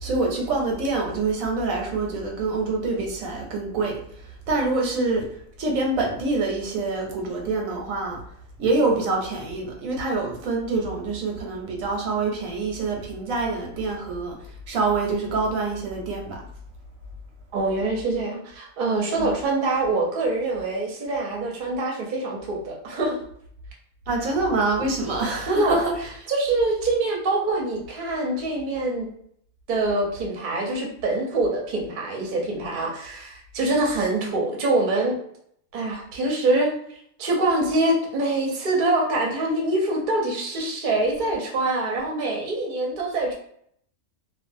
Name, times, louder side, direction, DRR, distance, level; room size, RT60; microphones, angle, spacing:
voice 1, 0.0-3.9 4.5-5.3 5.6-8.2 8.6-14.4 14.7-16.4 19.2-19.3 24.1-25.9 34.2-34.3, right 3 dB, 85° right, 0 dB, 1.1 m, -25 dB
voice 2, 17.5-23.2 25.5-25.8 26.3-29.1 29.7-35.2 35.7-36.7 37.2-43.3, right 2 dB, 50° right, -1 dB, 0.7 m, -24 dB
2.4 x 2.4 x 2.5 m, 0.67 s
omnidirectional pair, 1.4 m